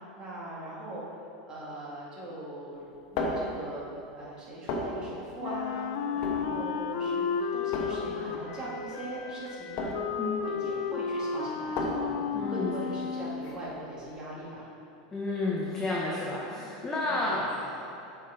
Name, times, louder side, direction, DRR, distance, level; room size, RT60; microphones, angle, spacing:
voice 1, 0.2-1.0 1.5-3.8 4.2-9.9 10.4-14.7 17.1-17.3, right 1 dB, 20° right, -6 dB, 1.9 m, -41 dB
sound 1, 2.7-14.3, left 2 dB, 45° left, 1.1 m, -37 dB
Wind instrument woodwind instrument, 5.4-13.5, left 6 dB, 60° left, 0.5 m, -33 dB
voice 2, 12.3-12.8 15.1-17.9, left 2 dB, 15° left, -4 dB, 0.8 m, -31 dB
7.1 x 5.6 x 4.9 m, 2.6 s
supercardioid pair, 155°, 4 cm